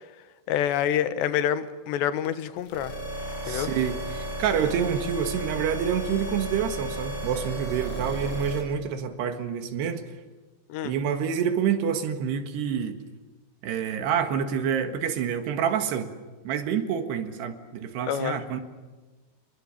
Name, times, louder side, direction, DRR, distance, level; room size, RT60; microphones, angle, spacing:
voice 1, 0.5-3.0 3.5-3.7 10.7-11.0 18.1-18.4, left 10 dB, 85° left, 12 dB, 3.4 m, -27 dB
sound 1, 2.6-8.6, right 1 dB, 20° left, 7.6 m, -34 dB
voice 2, 3.4-10.0 10.8-13.0 13.6-16.1 16.5-18.6, right 8 dB, 75° right, 7 dB, 3.7 m, -27 dB
27.0 x 23.0 x 7.2 m, 1.3 s
omnidirectional pair, 4.9 m